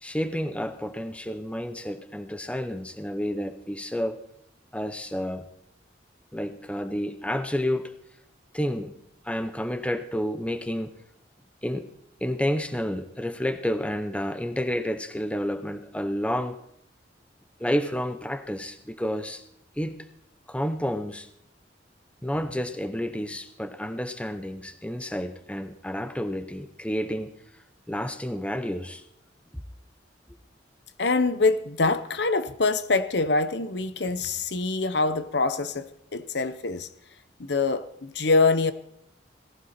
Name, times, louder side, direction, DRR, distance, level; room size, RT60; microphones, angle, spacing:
voice 1, 0.0-4.2 4.7-5.5 6.3-7.9 8.5-8.9 9.2-10.9 11.6-11.9 12.2-16.6 17.6-19.4 19.8-20.0 20.5-21.3 22.2-27.3 27.9-29.0 29.5-29.6, equal, 5° left, 10 dB, 0.7 m, -30 dB
voice 2, 31.0-36.9 37.4-38.7, left 3 dB, 65° left, 13 dB, 0.9 m, -24 dB
17.5 x 15.0 x 4.3 m, 0.74 s
head